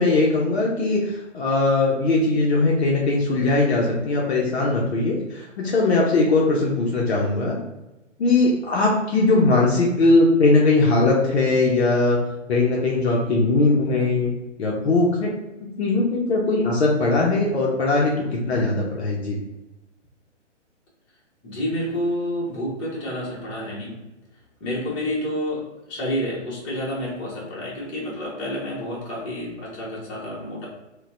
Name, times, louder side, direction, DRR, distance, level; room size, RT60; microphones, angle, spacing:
voice 1, 0.0-7.6 8.2-12.2 12.5-14.3 14.6-15.3 15.8-19.4, left 2 dB, 60° left, -3 dB, 0.7 m, -20 dB
voice 2, 21.4-24.0 24.6-30.7, left 1 dB, 25° left, -6 dB, 1.1 m, -29 dB
4.0 x 2.3 x 2.4 m, 1.0 s
hypercardioid pair, 140°, 37 cm